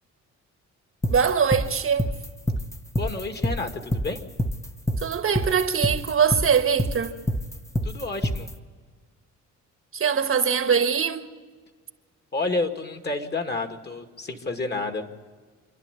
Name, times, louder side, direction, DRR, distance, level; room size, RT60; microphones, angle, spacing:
sound 1, 1.0-8.5, equal, 10° left, 1.0 m, -26 dB
voice 1, 1.1-2.1 5.0-7.1 9.9-11.3, right 7 dB, 45° right, 1.4 m, -22 dB
voice 2, 3.0-4.2 7.8-8.5 12.3-15.1, left 3 dB, 35° left, 2.3 m, -30 dB
27.5 x 11.0 x 8.4 m
cardioid pair, 90°, 30 cm